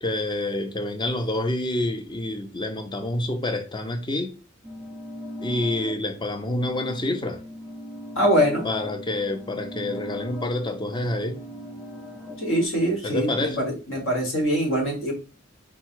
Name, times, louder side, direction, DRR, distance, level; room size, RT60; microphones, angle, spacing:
voice 1, 0.0-4.3 5.4-7.4 8.6-11.4 13.0-13.7, left 1 dB, 20° left, 0.5 m, -27 dB
sound 1, 4.6-12.7, equal, 5° left, 1.1 m, -40 dB
voice 2, 8.1-8.7 12.4-15.1, equal, 70° left, 1.5 m, -23 dB
3.9 x 2.3 x 4.5 m
head